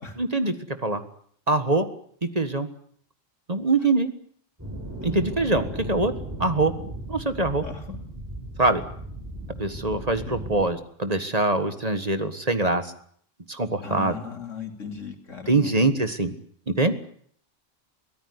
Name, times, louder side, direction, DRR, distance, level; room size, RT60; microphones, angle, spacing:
voice 1, 0.2-0.5 0.8-1.0 1.5-1.9 2.2-2.7 3.5-4.1 5.0-6.1 6.4-6.7 7.1-7.6 8.6-8.8 9.6-12.8 13.5-14.1 15.5-16.3 16.7-16.9, right 2 dB, 30° right, 9 dB, 1.7 m, -23 dB
sound 1, 4.6-10.7, right 1 dB, 10° right, 6.9 m, -36 dB
voice 2, 7.6-8.0 10.2-10.5 13.8-15.8, left 5 dB, 85° left, 5 dB, 3.4 m, -37 dB
23.5 x 16.5 x 9.7 m, 0.63 s
omnidirectional pair, 1.3 m